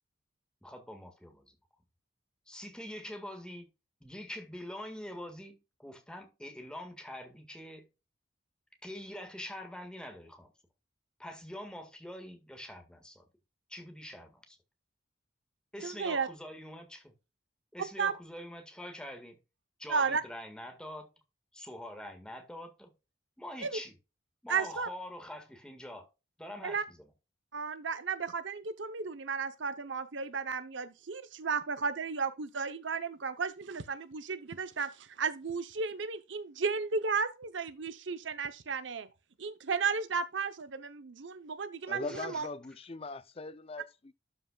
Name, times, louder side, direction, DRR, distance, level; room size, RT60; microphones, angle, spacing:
voice 1, 0.6-1.5 2.5-3.7 4.0-7.9 8.8-10.5 11.2-13.2 13.7-14.6 15.7-17.1 17.7-19.4 19.8-21.1 21.5-22.9 23.4-23.9 24.4-26.1 26.4-27.1 42.0-42.4, left 1 dB, 5° left, 1.7 m, -45 dB
voice 2, 15.8-16.3 18.0-18.1 19.9-20.2 23.6-23.8 24.5-24.9 26.6-26.8 27.5-39.1 39.4-42.5, right 5 dB, 80° right, 0.8 m, -34 dB
voice 3, 41.9-44.1, left 3 dB, 30° left, 0.5 m, -41 dB
12.0 x 5.5 x 2.3 m
head